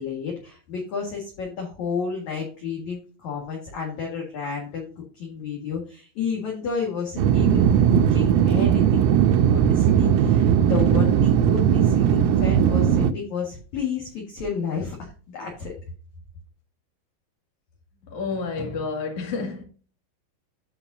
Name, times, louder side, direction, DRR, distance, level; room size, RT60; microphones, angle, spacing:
voice 1, 0.0-9.0 9.4-15.7, left 5 dB, 60° left, 2.0 m, -31 dB
sound 1, 7.2-13.1, right 9 dB, 85° right, 3.2 m, -18 dB
voice 2, 18.0-19.6, left 4 dB, 45° left, 2.1 m, -29 dB
14.0 x 5.0 x 2.6 m
omnidirectional pair, 5.7 m